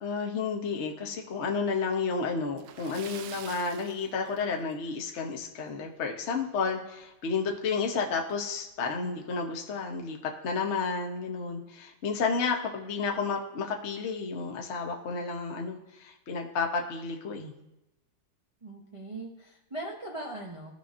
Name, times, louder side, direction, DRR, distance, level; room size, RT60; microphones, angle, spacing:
voice 1, 0.0-17.5, left 4 dB, 50° left, 1 dB, 0.8 m, -31 dB
Splash splatter, 2.5-4.9 5.2-5.4 5.8-5.9 7.4-7.5 7.8-7.9 8.5-8.8, right 9 dB, 75° right, 1.2 m, -46 dB
voice 2, 18.6-20.7, right 2 dB, 55° right, -2 dB, 0.3 m, -40 dB
14.5 x 5.5 x 2.5 m, 0.94 s
omnidirectional pair, 2.3 m